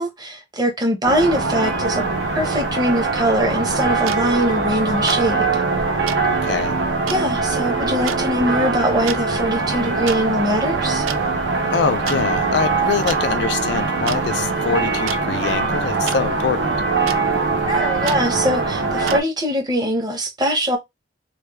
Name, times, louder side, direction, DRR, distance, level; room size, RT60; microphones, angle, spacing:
voice 1, 0.0-2.0 2.3-5.6 7.1-11.1 17.7-20.8, equal, 20° right, 0.8 m, -22 dB
sound 1, 1.0-19.2, right 3 dB, 60° right, 0.7 m, -22 dB
sound 2, 4.1-4.2 5.1-5.2 6.1-6.2 7.1-7.2 8.1-8.2 8.9-9.2 10.1-10.2 11.1-11.2 12.1-12.2 13.1-13.2 14.1-14.2 15.1-15.2 16.1-16.2 17.1-17.2 18.1-18.2 19.1-19.2, right 10 dB, 85° right, 0.4 m, -28 dB
voice 2, 6.3-6.8 11.7-16.7, left 6 dB, 55° left, 0.3 m, -24 dB
3.2 x 2.3 x 3.4 m
head